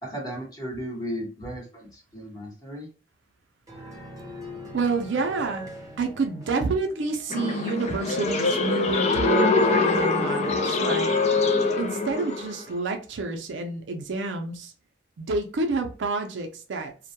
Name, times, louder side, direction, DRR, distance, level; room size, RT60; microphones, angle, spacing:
voice 1, 0.0-2.9, equal, 20° left, 1.0 m, -35 dB
sound 1, 3.7-7.8, equal, 20° right, 0.6 m, -42 dB
voice 2, 4.7-5.7 6.0-11.1 11.8-14.7 15.2-16.9, right 3 dB, 65° right, 0.4 m, -28 dB
sound 2, 7.3-12.6, left 3 dB, 35° left, 0.3 m, -24 dB
2.2 x 2.1 x 2.7 m
head